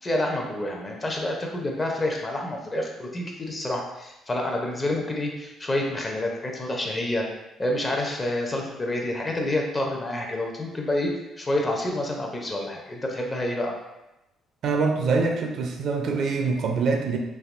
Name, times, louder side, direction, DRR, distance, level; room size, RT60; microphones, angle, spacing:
voice 1, 0.0-7.2 7.6-13.7, left 1 dB, 25° left, 1 dB, 0.6 m, -28 dB
voice 2, 14.6-17.2, right 4 dB, 65° right, 3 dB, 0.4 m, -24 dB
3.3 x 2.5 x 2.5 m, 0.94 s
cardioid pair, 100°, 0 cm